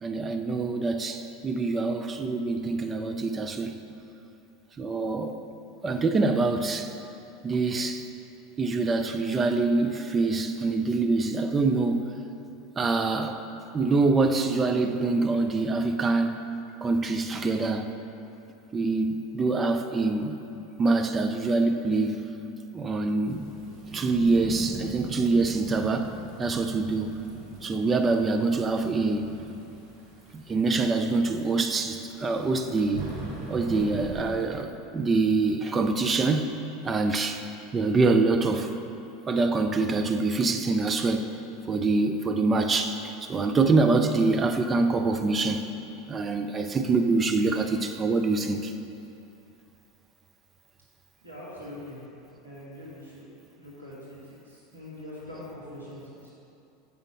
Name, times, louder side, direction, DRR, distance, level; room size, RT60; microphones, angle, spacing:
voice 1, 0.0-3.8 4.8-5.4 5.8-6.9 7.4-8.0 8.6-12.1 12.8-13.4 13.7-16.5 16.8-17.9 18.7-20.4 20.8-22.2 22.7-23.4 23.9-27.2 27.6-29.3 30.3-33.0 33.5-36.5 36.8-37.4 37.7-38.7 39.3-41.4 41.7-42.9 43.3-45.7 46.1-48.7, right 3 dB, 25° right, 0.5 m, -25 dB
Thunderstorm / Rain, 23.2-34.5, right 3 dB, 50° right, 1.2 m, -41 dB
voice 2, 51.2-52.0 52.4-53.3 53.6-56.3, left 1 dB, 85° right, 1.4 m, -43 dB
6.9 x 5.1 x 4.2 m
figure-of-eight pair, 80°, 0 cm